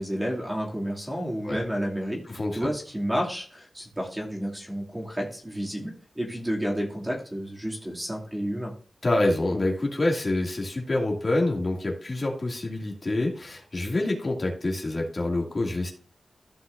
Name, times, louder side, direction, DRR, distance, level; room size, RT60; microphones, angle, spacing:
voice 1, 0.0-2.2 2.5-8.7, equal, 10° right, -2 dB, 2.5 m, -31 dB
voice 2, 2.3-2.7 9.0-15.9, left 2 dB, 40° left, -1 dB, 2.4 m, -27 dB
14.5 x 5.8 x 2.6 m, 0.43 s
wide cardioid pair, 125°, 0 cm